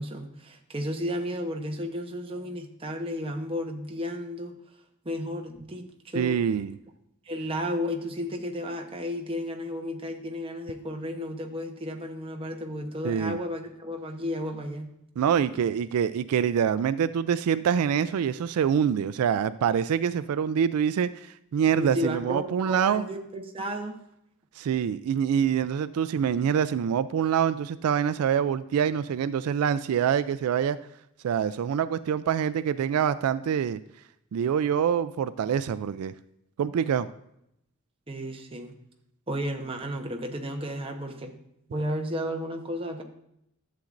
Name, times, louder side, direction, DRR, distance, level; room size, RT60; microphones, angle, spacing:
voice 1, 0.0-4.6 5.0-6.4 7.2-14.9 21.8-24.0 38.1-38.7 39.3-41.3 41.7-43.0, equal, 25° right, 3 dB, 0.9 m, -33 dB
voice 2, 6.1-6.8 13.0-13.4 15.2-21.1 21.5-23.0 24.6-30.8 31.2-33.8 34.3-36.1 36.6-37.1, right 8 dB, 85° right, 14 dB, 0.3 m, -25 dB
11.5 x 7.6 x 2.5 m, 0.78 s
head